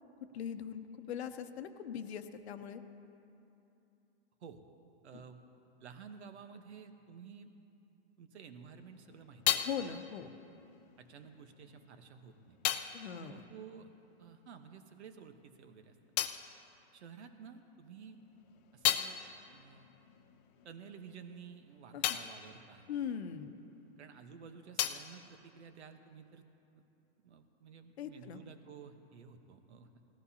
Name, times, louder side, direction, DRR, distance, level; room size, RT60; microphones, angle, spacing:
voice 1, 0.3-2.8 5.1-5.2 9.6-10.3 12.9-13.4 21.9-22.2 22.9-23.5 28.0-28.4, left 8 dB, 70° left, 9 dB, 0.9 m, -40 dB
voice 2, 5.0-5.4 5.8-7.5 8.2-9.7 11.0-12.6 13.1-13.9 14.2-16.0 16.9-18.2 18.7-19.2 19.5-19.9 20.6-22.9 24.0-26.4 27.2-29.9, right 6 dB, 75° right, 7 dB, 1.2 m, -52 dB
sound 1, 8.6-14.6 14.9-17.6 18.0-24.0 24.3-26.3, left 12 dB, 40° left, 0.6 m, -39 dB
19.0 x 14.5 x 2.9 m, 2.8 s
hypercardioid pair, 140°, 33 cm